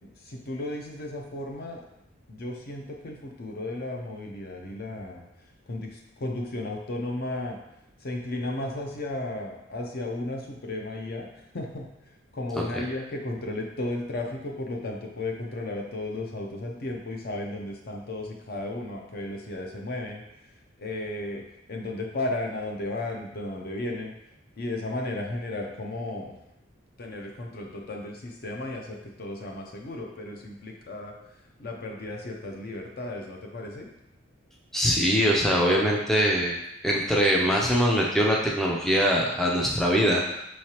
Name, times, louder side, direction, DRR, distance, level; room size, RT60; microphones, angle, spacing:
voice 1, 0.0-1.8 2.3-5.3 5.7-7.6 8.0-11.3 11.5-11.9 12.3-20.5 20.8-24.1 24.6-26.4 27.0-31.2 31.6-33.9, left 2 dB, 50° left, 1 dB, 0.6 m, -34 dB
voice 2, 34.7-36.5 36.8-40.2, equal, ahead, -3 dB, 0.4 m, -22 dB
4.7 x 3.1 x 2.9 m, 0.83 s
head